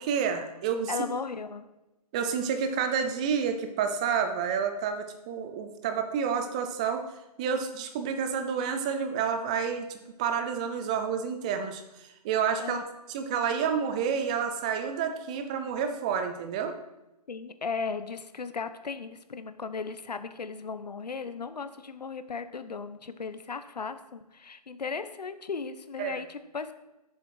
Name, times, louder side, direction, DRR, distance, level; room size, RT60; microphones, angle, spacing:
voice 1, 0.0-0.9 2.1-7.0 7.4-9.9 10.2-12.8 13.1-16.7 26.0-26.2, right 7 dB, 10° right, 7 dB, 0.4 m, -29 dB
voice 2, 0.9-1.6 12.6-12.8 17.3-26.7, left 5 dB, 85° left, 11 dB, 1.0 m, -36 dB
12.5 x 7.0 x 4.6 m, 0.97 s
hypercardioid pair, 155°, 20 cm